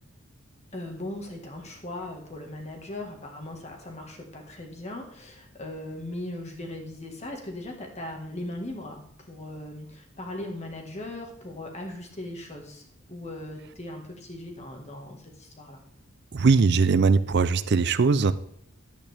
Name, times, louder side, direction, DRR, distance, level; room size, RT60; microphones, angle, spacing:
voice 1, 0.7-15.8, left 1 dB, 30° left, 2 dB, 1.6 m, -39 dB
voice 2, 16.3-18.3, right 4 dB, 50° right, 15 dB, 0.4 m, -20 dB
11.0 x 8.7 x 3.5 m, 0.69 s
head